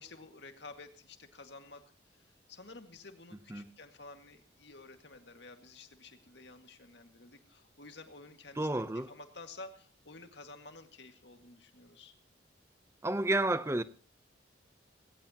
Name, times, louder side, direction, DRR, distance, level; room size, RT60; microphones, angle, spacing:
voice 1, 0.0-12.1, left 3 dB, 65° left, 2.0 m, -52 dB
voice 2, 8.6-9.1 13.0-13.8, right 2 dB, 15° right, 0.7 m, -30 dB
20.5 x 18.0 x 3.0 m
head